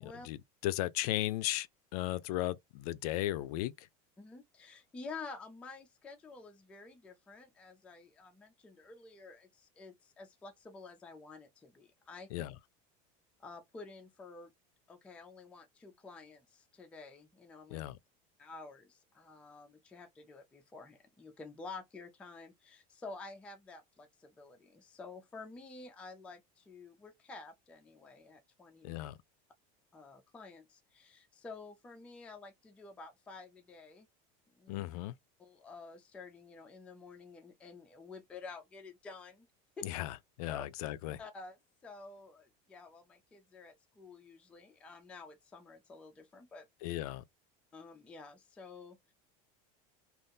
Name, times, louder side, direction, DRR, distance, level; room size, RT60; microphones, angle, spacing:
voice 1, 0.0-1.7 1.9-3.9 12.3-12.5 17.7-18.0 28.8-29.2 34.7-35.1 39.8-41.2 46.8-47.2, left 15 dB, 85° left, 0.4 m, -36 dB
voice 2, 4.2-12.4 13.4-14.5 14.9-17.8 18.4-29.0 29.9-34.1 34.6-34.8 35.4-39.5 39.8-39.9 40.5-40.7 41.2-46.7 47.7-49.1, left 3 dB, 5° left, 0.3 m, -50 dB
2.6 x 2.4 x 3.5 m
cardioid pair, 175°, 19 cm